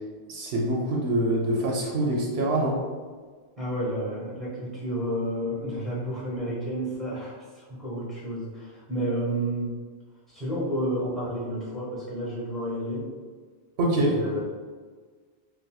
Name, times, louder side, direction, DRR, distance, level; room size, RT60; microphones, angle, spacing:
voice 1, 0.3-2.8 13.8-14.4, right 1 dB, 75° right, -2 dB, 0.8 m, -25 dB
voice 2, 3.6-9.8 10.3-13.1 14.0-14.4, right 1 dB, ahead, -7 dB, 1.3 m, -31 dB
3.9 x 2.4 x 2.3 m, 1.5 s
omnidirectional pair, 1.1 m